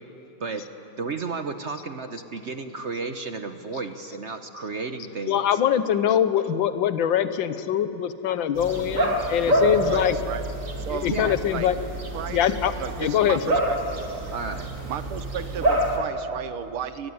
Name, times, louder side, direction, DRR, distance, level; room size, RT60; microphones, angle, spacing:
voice 1, 1.0-5.6 11.1-11.4 14.3-14.7, right 4 dB, 50° right, 8 dB, 0.8 m, -33 dB
voice 2, 5.3-10.2 10.9-11.7 12.3-12.7 13.0-13.6, left 9 dB, 65° left, 12 dB, 1.6 m, -23 dB
sound 1, 8.5-16.0, right 1 dB, 35° right, 2.6 m, -27 dB
voice 3, 9.9-10.5 10.8-11.1 11.5-11.7 12.1-12.4 12.8-14.0 14.9-17.1, right 9 dB, 80° right, 12 dB, 1.9 m, -34 dB
22.0 x 21.5 x 9.7 m, 2.9 s
omnidirectional pair, 2.4 m